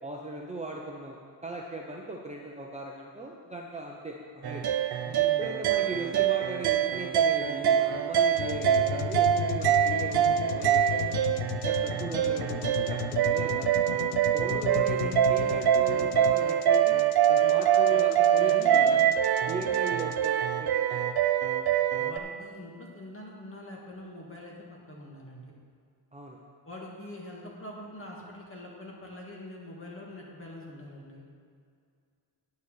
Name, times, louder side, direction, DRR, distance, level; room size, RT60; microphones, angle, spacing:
voice 1, 0.0-4.7 5.2-11.2 11.6-13.9 14.3-17.0 17.3-19.0 19.5-20.7 26.1-26.4, right 2 dB, 15° right, -2 dB, 0.7 m, -38 dB
sound 1, 4.4-22.2, right 9 dB, 55° right, 0.6 m, -25 dB
voice 2, 5.0-5.4 18.5-18.9 19.6-19.8 22.0-24.6 24.9-25.5 26.6-31.2, left 1 dB, 30° left, -2 dB, 1.9 m, -44 dB
sound 2, 8.4-20.3, left 10 dB, 90° left, 0.5 m, -36 dB
9.4 x 6.9 x 6.7 m, 2.2 s
wide cardioid pair, 160°, 45 cm